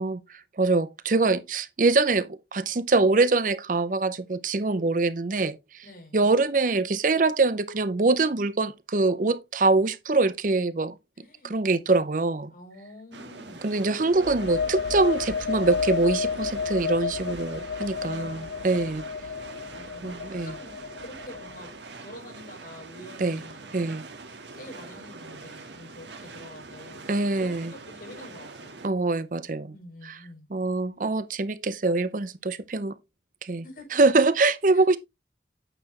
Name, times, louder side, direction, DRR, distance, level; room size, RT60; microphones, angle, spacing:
voice 1, 0.0-5.6 6.1-10.9 11.4-12.5 13.6-19.0 20.0-20.5 23.2-23.4 23.7-24.0 27.1-27.7 28.8-29.7 30.5-33.0 33.4-33.6 33.9-35.0, right 3 dB, 50° right, 0.6 m, -24 dB
voice 2, 5.8-6.2 11.2-11.6 12.5-13.6 17.9-18.7 19.7-21.7 22.0-23.7 24.3-27.1 27.4-28.8 29.7-30.5 33.6-34.0 34.7-34.8, left 1 dB, 50° left, 5.7 m, -47 dB
sound 1, 13.1-28.9, right 3 dB, 85° right, 1.5 m, -43 dB
sound 2, 14.1-21.7, left 6 dB, 80° left, 0.4 m, -32 dB
8.9 x 6.7 x 3.0 m
head